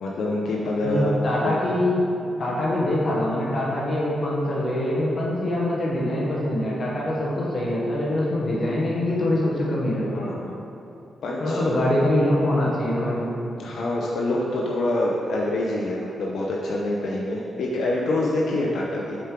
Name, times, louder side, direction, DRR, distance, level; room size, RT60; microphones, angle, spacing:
voice 1, 0.0-1.1 1.4-1.5 10.1-10.5 11.2-11.6 13.6-19.2, left 1 dB, 75° left, -3 dB, 0.6 m, -26 dB
voice 2, 0.8-2.0 2.4-10.3 11.4-13.3, left 1 dB, 50° left, -5 dB, 1.0 m, -24 dB
7.0 x 4.5 x 3.7 m, 2.8 s
cardioid pair, 95°, 0 cm